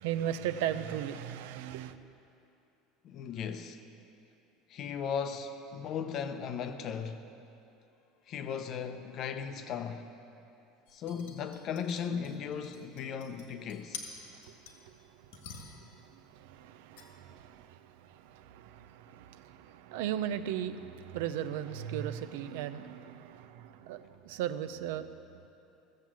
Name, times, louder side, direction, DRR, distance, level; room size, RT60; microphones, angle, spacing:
voice 1, 0.0-2.0 14.3-25.1, right 10 dB, 80° right, 0.6 m, -38 dB
voice 2, 3.0-3.8 4.7-7.2 8.3-10.1 10.9-14.0, left 7 dB, 35° left, 0.7 m, -37 dB
sound 1, 10.9-14.9 15.3-16.0 17.0-17.1, left 6 dB, 90° left, 1.8 m, -49 dB
15.5 x 7.5 x 7.4 m
cardioid pair, 175°, 0 cm